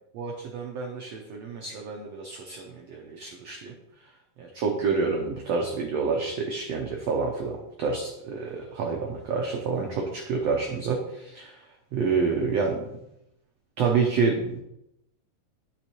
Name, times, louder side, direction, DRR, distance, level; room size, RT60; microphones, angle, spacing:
voice 1, 0.1-3.7 4.4-11.6 11.9-12.9 13.8-14.6, right 5 dB, 85° right, 1 dB, 1.4 m, -28 dB
10.0 x 6.5 x 3.0 m, 0.84 s
omnidirectional pair, 4.1 m